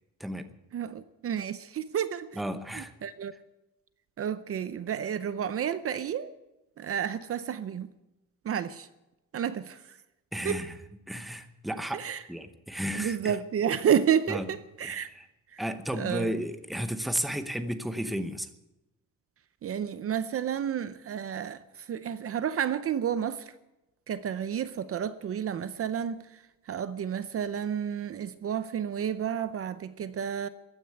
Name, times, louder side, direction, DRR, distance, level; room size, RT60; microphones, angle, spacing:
voice 1, 0.2-0.5 2.4-2.9 10.3-10.7 11.1-13.4 14.3-14.4 14.8-15.3 15.6-18.5, equal, ahead, 9 dB, 0.8 m, -33 dB
voice 2, 0.7-2.4 2.7-3.3 4.2-6.3 6.8-7.9 8.4-8.9 9.3-10.0 10.4-10.6 11.9-12.2 12.9-15.1 15.5-15.6 15.9-16.3 19.6-23.5 24.1-30.5, right 8 dB, 40° right, 13 dB, 0.6 m, -31 dB
15.0 x 9.9 x 9.4 m, 0.95 s
cardioid pair, 175°, 34 cm